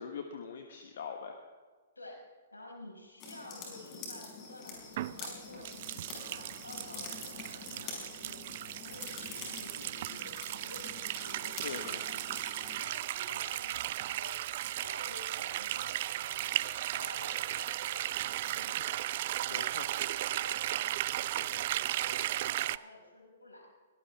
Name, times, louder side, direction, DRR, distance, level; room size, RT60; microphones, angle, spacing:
voice 1, 0.0-1.4 11.6-12.0 19.4-19.9, left 6 dB, 55° left, 5 dB, 1.4 m, -42 dB
voice 2, 2.0-10.9 11.2-12.2 12.8-18.9 19.4-23.7, left 2 dB, 80° left, 0 dB, 5.5 m, -52 dB
sound 1, 3.2-12.8, left 4 dB, 30° left, 6.1 m, -46 dB
sound 2, 5.0-22.8, right 14 dB, 45° right, 0.4 m, -36 dB
22.5 x 18.0 x 3.5 m, 1.4 s
figure-of-eight pair, 115°, 0 cm